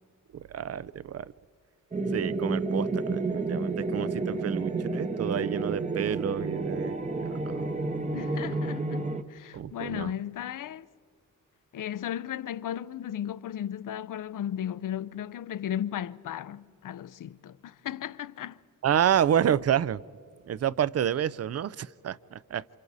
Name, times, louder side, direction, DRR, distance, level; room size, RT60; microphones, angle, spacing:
voice 1, 0.3-1.3 2.1-7.3 8.1-8.2 9.5-10.1 18.8-20.0 20.5-22.6, right 9 dB, 50° right, 0.5 m, -29 dB
sound 1, 1.9-9.2, right 3 dB, 20° right, 0.8 m, -30 dB
voice 2, 8.1-10.9 11.7-18.6, left 10 dB, 70° left, 0.6 m, -35 dB
29.0 x 27.0 x 4.1 m
wide cardioid pair, 120°, 33 cm